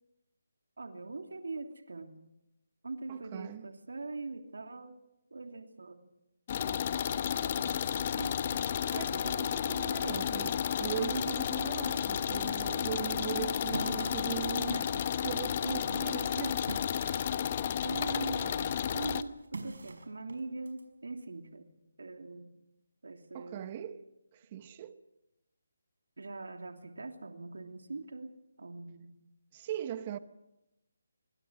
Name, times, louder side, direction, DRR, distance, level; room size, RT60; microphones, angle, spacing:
voice 1, 0.8-2.1 2.8-5.0 5.3-6.0 6.6-6.9 7.6-8.7 9.2-9.7 13.7-14.1 14.7-15.1 15.9-16.0 17.8-21.7 22.0-22.5 23.0-23.7 26.2-29.1, right 3 dB, 80° right, 2.8 m, -42 dB
voice 2, 3.1-3.7 8.9-14.8 15.2-16.6 17.0-17.1 23.3-24.0 24.3-25.0 29.5-30.2, right 11 dB, 25° right, 1.0 m, -39 dB
sound 1, 6.5-19.2, left 8 dB, 30° left, 1.0 m, -32 dB
sound 2, 11.7-17.8 18.2-20.8, right 3 dB, 65° right, 5.5 m, -45 dB
25.0 x 25.0 x 6.3 m
hypercardioid pair, 165°, 0 cm